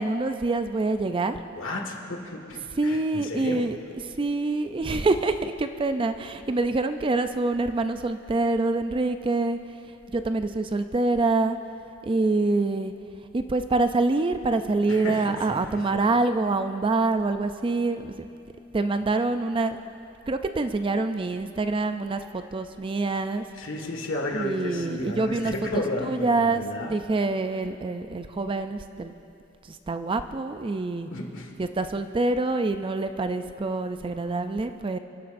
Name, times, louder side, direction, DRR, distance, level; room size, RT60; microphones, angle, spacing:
voice 1, 0.0-1.4 2.7-9.6 10.1-11.6 12.0-12.9 13.3-18.3 18.7-19.8 20.3-23.4 24.3-29.1 29.7-31.1 31.6-35.0, right 3 dB, 25° right, 9 dB, 0.4 m, -26 dB
voice 2, 1.5-3.7 14.9-16.2 19.0-19.1 23.6-27.0 31.1-31.5, left 1 dB, 70° left, 1 dB, 1.8 m, -33 dB
29.5 x 11.0 x 2.6 m, 2.7 s
head